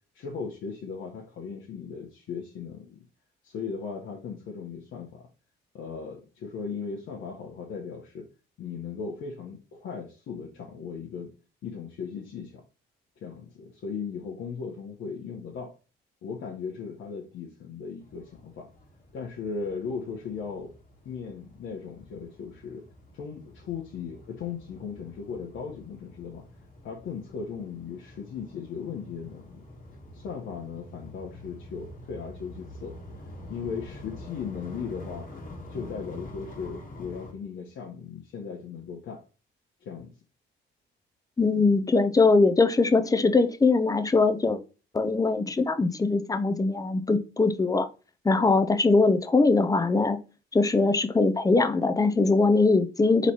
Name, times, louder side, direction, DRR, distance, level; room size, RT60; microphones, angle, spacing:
voice 1, 0.1-3.0 3.4-5.3 5.7-8.2 8.6-11.3 11.6-12.6 13.2-15.7 16.2-18.7 19.1-20.7 21.0-22.8 23.1-26.4 26.8-29.6 30.1-33.0 33.5-35.3 35.7-39.2 39.8-40.1, left 5 dB, 70° left, 0.9 m, -37 dB
sound 1, 18.0-37.3, left 1 dB, 45° left, 1.3 m, -46 dB
voice 2, 41.4-44.6 44.9-47.9 48.2-50.2 50.5-53.3, left 3 dB, 20° left, 0.5 m, -22 dB
4.0 x 3.1 x 4.2 m
cardioid pair, 90°, 20 cm